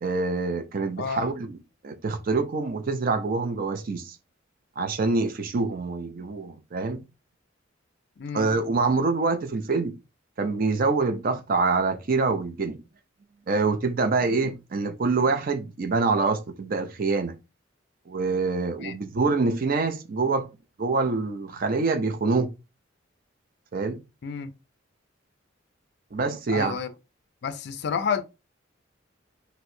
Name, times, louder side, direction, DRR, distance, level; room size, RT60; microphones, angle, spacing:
voice 1, 0.0-1.6 1.8-4.2 4.8-7.0 8.3-9.9 10.4-12.8 13.5-17.4 18.1-20.5 20.8-22.5 23.7-24.0 26.1-26.8, right 3 dB, 45° right, 0.5 m, -25 dB
voice 2, 1.0-1.3 8.2-8.5 18.8-19.0 24.2-24.5 26.5-26.9 27.4-28.2, left 6 dB, 55° left, 0.4 m, -30 dB
4.4 x 2.1 x 2.6 m
head